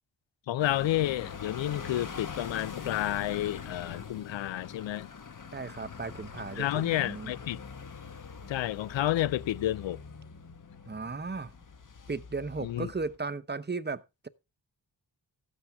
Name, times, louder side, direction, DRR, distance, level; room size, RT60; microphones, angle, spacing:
voice 1, 0.5-5.1 6.6-7.6 8.5-10.0 12.6-12.9, left 13 dB, 85° left, 0.5 m, -30 dB
sound 1, 0.6-13.2, left 5 dB, 45° left, 1.2 m, -44 dB
voice 2, 5.5-7.3 10.9-11.5 12.1-14.3, right 4 dB, 25° right, 0.8 m, -36 dB
14.0 x 8.8 x 3.5 m
cardioid pair, 75°, 44 cm